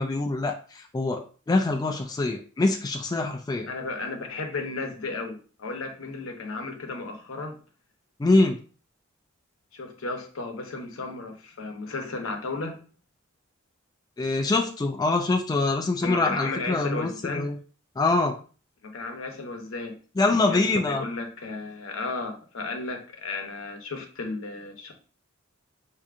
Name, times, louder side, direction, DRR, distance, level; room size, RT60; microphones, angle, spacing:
voice 1, 0.0-3.7 8.2-8.6 14.2-17.6 18.0-18.4 20.2-21.0, left 2 dB, 20° left, 3 dB, 0.3 m, -24 dB
voice 2, 3.7-7.6 9.7-12.8 16.0-17.5 18.8-20.0 20.3-24.9, left 3 dB, 75° left, 3 dB, 0.8 m, -34 dB
4.6 x 2.7 x 2.5 m, 0.38 s
head